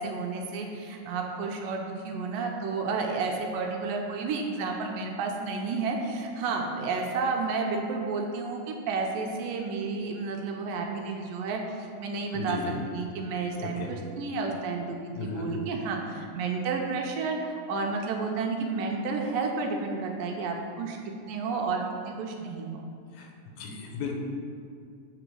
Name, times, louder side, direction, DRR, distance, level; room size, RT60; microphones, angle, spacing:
voice 1, 0.0-12.6 12.9-21.0 21.3-22.8, right 4 dB, 80° right, 1 dB, 2.3 m, -31 dB
voice 2, 12.3-12.8 13.6-13.9 15.1-15.5 23.1-24.2, left 4 dB, 85° left, 1 dB, 2.7 m, -36 dB
7.9 x 4.0 x 6.1 m, 2.4 s
omnidirectional pair, 4.1 m